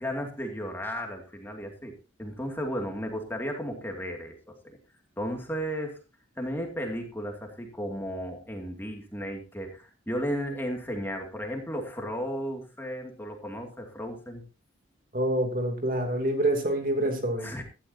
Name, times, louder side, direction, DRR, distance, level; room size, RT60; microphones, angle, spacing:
voice 1, 0.0-4.3 4.6-4.8 5.2-6.0 6.4-14.4 17.4-17.6, equal, 10° left, 2 dB, 2.5 m, -34 dB
voice 2, 15.1-17.5, right 1 dB, 45° right, 4 dB, 3.1 m, -26 dB
17.0 x 12.5 x 2.8 m, 0.31 s
head